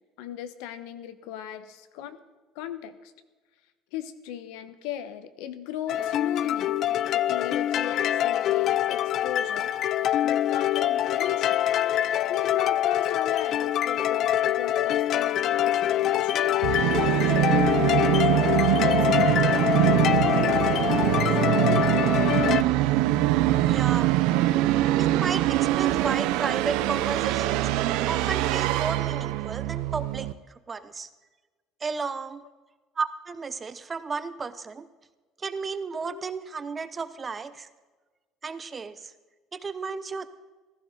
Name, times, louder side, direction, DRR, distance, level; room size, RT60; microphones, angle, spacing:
voice 1, 0.2-2.2 2.5-3.1 3.9-6.7 7.1-9.8 10.2-11.6 12.0-16.6 17.2-21.9 24.3-24.5 36.0-36.2 40.1-40.3, left 10 dB, 85° left, 12 dB, 1.0 m, -38 dB
sound 1, 5.9-22.6, left 12 dB, 45° left, 0.3 m, -24 dB
Musical instrument, 16.6-30.3, right 15 dB, 80° right, 0.6 m, -23 dB
voice 2, 23.6-24.1 25.0-30.3 30.7-31.1 31.8-32.4 33.0-34.9 35.4-37.7 38.4-39.1 39.5-40.3, right 5 dB, 20° right, 12 dB, 0.7 m, -33 dB
15.5 x 14.5 x 3.9 m, 1.3 s
cardioid pair, 145°, 0 cm